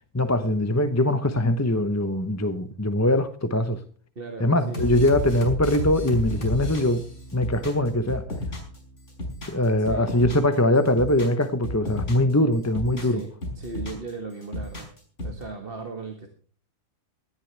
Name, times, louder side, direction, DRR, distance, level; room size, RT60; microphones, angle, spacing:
voice 1, 0.1-3.8 4.4-7.0 7.3-8.3 9.5-13.2, left 1 dB, 15° left, 0.6 m, -22 dB
voice 2, 4.2-4.9 9.8-10.1 12.4-12.5 13.0-14.9 15.2-16.3, right 3 dB, 35° right, 1.9 m, -37 dB
sound 1, 4.7-8.8 9.1-10.5 10.9-12.3 12.6-14.1 14.4-15.4, left 1 dB, 45° left, 5.6 m, -32 dB
18.5 x 14.0 x 3.4 m
omnidirectional pair, 1.8 m